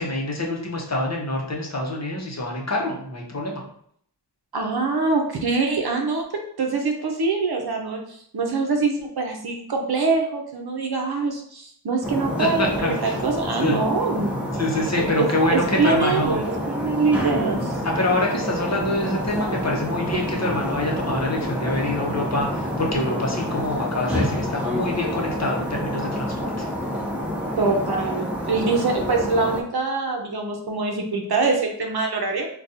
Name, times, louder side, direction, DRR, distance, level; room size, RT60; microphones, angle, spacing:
voice 1, 0.0-3.6 12.4-12.9 13.6-13.8 14.6-16.4 17.8-26.7, left 1 dB, 40° left, -1 dB, 0.8 m, -26 dB
voice 2, 4.5-6.2 6.6-14.3 15.0-17.8 27.6-32.5, right 3 dB, 60° right, 2 dB, 0.7 m, -24 dB
sound 1, 12.0-29.6, equal, 5° right, 0.6 m, -28 dB
4.0 x 2.3 x 2.6 m, 0.65 s
wide cardioid pair, 70°, 42 cm